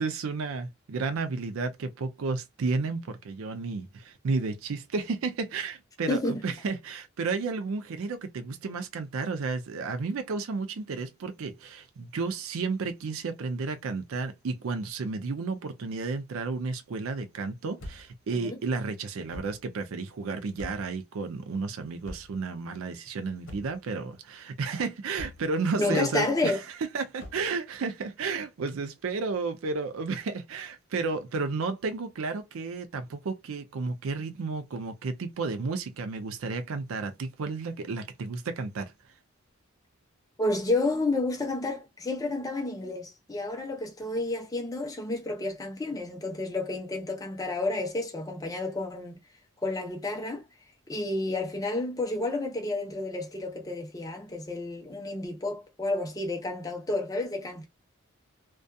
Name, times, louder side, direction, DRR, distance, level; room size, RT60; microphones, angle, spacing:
voice 1, 0.0-38.9, right 4 dB, 75° right, 0.4 m, -32 dB
voice 2, 6.1-6.4 18.3-18.6 25.8-26.6 40.4-49.2 49.6-50.4 50.9-57.7, left 2 dB, 15° left, 0.6 m, -30 dB
sound 1, 17.8-18.2 19.3-19.6 20.6-21.0 22.0-22.5 23.4-23.9 25.2-25.5 27.2-27.5, left 1 dB, 70° left, 0.9 m, -43 dB
2.6 x 2.3 x 2.2 m
head